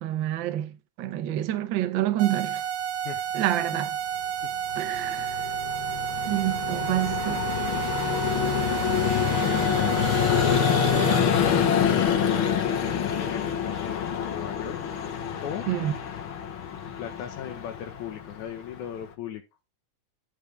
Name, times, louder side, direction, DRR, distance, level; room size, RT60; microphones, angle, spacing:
voice 1, 0.0-2.6 3.3-4.0 4.8-5.5 6.2-7.5 15.7-15.9, right 13 dB, 80° right, 1.0 m, -28 dB
sound 1, 2.2-11.2, right 9 dB, 60° right, 1.9 m, -31 dB
Vehicle, 4.4-19.1, left 8 dB, 55° left, 1.5 m, -26 dB
voice 2, 9.0-9.9 10.3-12.4 13.2-14.8 15.4-15.7 17.0-19.4, left 9 dB, 80° left, 2.3 m, -37 dB
9.6 x 7.0 x 3.3 m
omnidirectional pair, 3.4 m